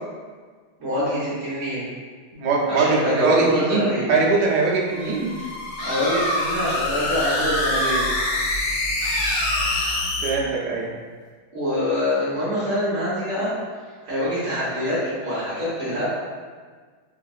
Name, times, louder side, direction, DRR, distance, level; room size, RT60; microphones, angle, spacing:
voice 1, 0.8-1.9 2.7-4.1 5.8-8.1 11.5-13.5 14.0-16.1, equal, 40° right, -12 dB, 1.2 m, -25 dB
voice 2, 2.3-5.5 10.2-10.9, right 4 dB, 70° right, -3 dB, 1.1 m, -22 dB
sound 1, 4.9-10.3, left 2 dB, 80° left, 1.4 m, -26 dB
sound 2, 5.8-6.7 7.2-8.4 9.0-10.1, right 1 dB, 55° left, 0.9 m, -28 dB
4.7 x 2.5 x 2.3 m, 1.5 s
omnidirectional pair, 2.3 m